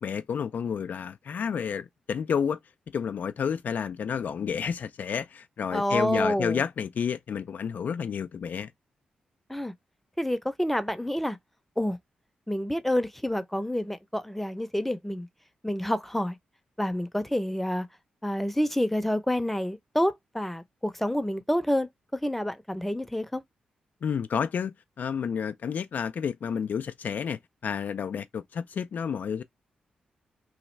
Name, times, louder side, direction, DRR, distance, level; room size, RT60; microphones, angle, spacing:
voice 1, 0.0-2.6 2.9-8.7 24.0-29.4, left 7 dB, 65° left, 0.3 m, -30 dB
voice 2, 5.7-6.6 9.5-9.7 10.2-11.4 11.8-12.0 12.5-15.3 15.6-16.4 16.8-17.9 18.2-23.4, left 1 dB, 5° left, 0.6 m, -28 dB
3.1 x 2.4 x 3.1 m
supercardioid pair, 45°, 3 cm